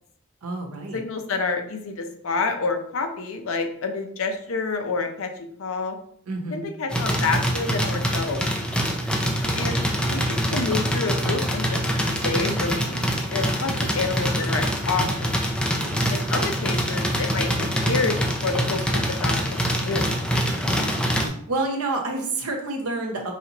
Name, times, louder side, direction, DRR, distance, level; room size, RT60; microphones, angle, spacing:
voice 1, 0.4-1.0 6.3-6.6 9.5-10.1 15.7-16.1 21.5-23.3, right 2 dB, 90° right, 3 dB, 0.8 m, -29 dB
voice 2, 0.9-6.0 6.5-8.5 9.5-9.8 10.1-11.8 12.0-13.0 13.3-15.3 16.1-18.2 18.4-19.3 19.7-20.0, left 4 dB, 65° left, 5 dB, 0.6 m, -28 dB
sound 1, 6.9-21.3, equal, 5° left, 0.4 m, -24 dB
4.8 x 2.8 x 2.8 m, 0.66 s
head